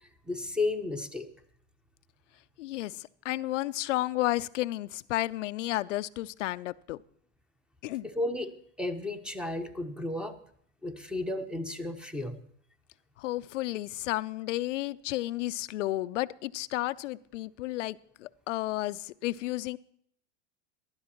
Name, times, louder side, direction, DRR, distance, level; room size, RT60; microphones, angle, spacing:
voice 1, 0.3-1.3 8.0-10.4 10.8-12.4, left 2 dB, ahead, 0.9 m, -33 dB
voice 2, 2.6-7.0 7.8-8.1 13.2-19.8, left 16 dB, 80° left, 0.5 m, -32 dB
17.5 x 12.0 x 3.0 m
hypercardioid pair, 105°, 36 cm